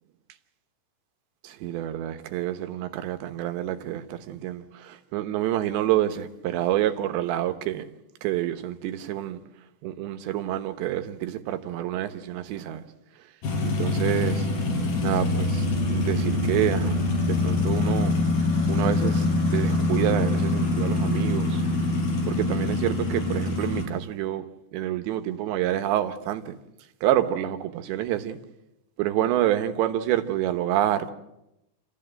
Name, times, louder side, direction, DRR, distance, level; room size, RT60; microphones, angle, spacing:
voice 1, 1.4-7.9 8.2-9.4 9.8-12.9 13.6-14.5 15.0-18.2 18.7-21.6 22.3-24.5 24.7-26.6 27.0-28.4 29.0-31.1, right 12 dB, 85° right, 3.4 m, -28 dB
sound 1, 13.4-23.8, left 2 dB, 60° left, 5.9 m, -24 dB
28.5 x 14.5 x 7.6 m
omnidirectional pair, 5.0 m